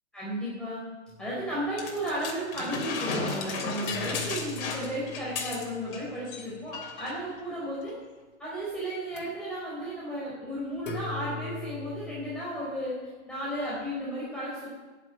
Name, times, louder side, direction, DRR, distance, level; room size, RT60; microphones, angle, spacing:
voice 1, 0.1-0.8 1.2-7.9 8.4-13.0 13.3-14.7, right 1 dB, ahead, -8 dB, 4.5 m, -34 dB
sound 1, 1.1-2.3 3.9-7.6 9.1-9.2 10.8-12.4, left 6 dB, 70° left, 3.6 m, -41 dB
sound 2, 1.8-6.0 6.3-6.4 6.7-7.2 7.9-8.0, left 4 dB, 45° left, 3.1 m, -34 dB
11.0 x 9.4 x 9.4 m, 1.3 s
hypercardioid pair, 140°, 39 cm